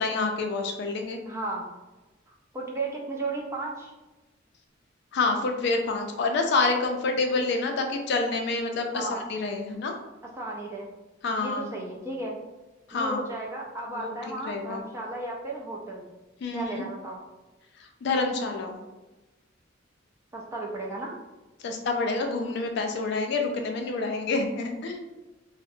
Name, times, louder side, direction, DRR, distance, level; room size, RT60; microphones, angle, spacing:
voice 1, 0.0-1.2 5.1-9.9 11.2-11.7 12.9-13.2 13.9-14.1 14.5-14.8 16.4-16.9 17.8-18.8 21.6-25.0, left 3 dB, 60° left, 4 dB, 0.3 m, -28 dB
voice 2, 1.3-1.7 2.3-3.9 8.9-9.3 10.4-10.9 11.4-12.4 12.9-16.0 16.5-17.2 20.3-21.1, right 2 dB, 15° right, -2 dB, 0.4 m, -34 dB
2.6 x 2.0 x 2.6 m, 1.1 s
head